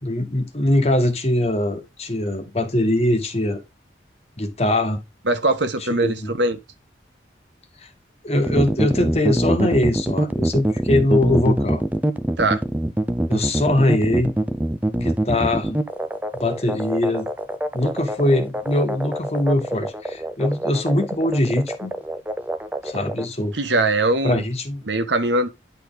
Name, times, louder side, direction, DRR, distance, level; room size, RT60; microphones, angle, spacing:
voice 1, 0.0-3.6 4.4-5.0 5.9-6.3 7.8-7.9 8.2-11.8 13.3-14.3 15.0-15.8 16.3-17.3 17.7-22.0 22.8-23.5 24.2-24.8, left 1 dB, 35° left, 1.4 m, -22 dB
voice 2, 5.2-6.6 12.4-12.6 23.5-24.4 24.9-25.5, right 2 dB, 75° right, 1.3 m, -21 dB
sound 1, 8.4-23.3, right 1 dB, 10° right, 0.5 m, -24 dB
10.0 x 4.1 x 3.9 m
head